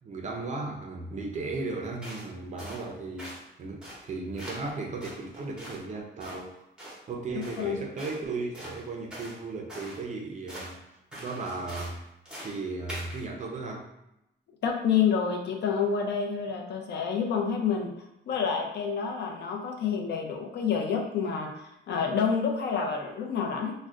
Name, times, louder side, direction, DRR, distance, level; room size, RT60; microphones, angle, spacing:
voice 1, 0.0-6.5 7.1-12.0 12.4-13.9, right 3 dB, 40° right, 1 dB, 0.4 m, -36 dB
sound 1, 2.0-2.3 2.6-2.9 3.2-3.4 3.8-4.1 4.4-4.7 5.0-5.8 6.2-6.4 6.8-7.0 7.4-7.7 8.0-8.2 8.5-9.4 9.7-10.0 10.5-10.7 11.1-12.0 12.3-12.6 12.9-13.2, equal, 5° right, 0.7 m, -42 dB
voice 2, 7.3-7.8 14.6-17.9 18.3-23.7, left 6 dB, 60° left, 1 dB, 0.5 m, -28 dB
3.6 x 2.1 x 2.3 m, 0.87 s
wide cardioid pair, 180°, 19 cm